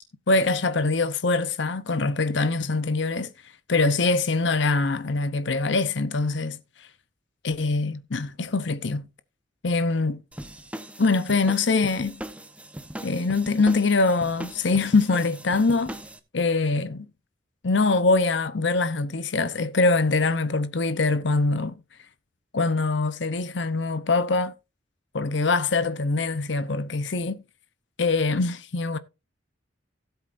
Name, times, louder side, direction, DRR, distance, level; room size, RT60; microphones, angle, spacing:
voice 1, 0.3-3.3 3.7-6.6 7.4-9.1 9.6-10.2 11.0-12.2 13.0-16.0 16.3-17.1 17.6-21.8 22.5-24.5 25.1-27.4 28.0-29.0, left 3 dB, 65° left, 0.8 m, -23 dB
sound 1, 10.3-16.2, right 1 dB, 5° right, 1.0 m, -39 dB
16.5 x 7.9 x 2.6 m
head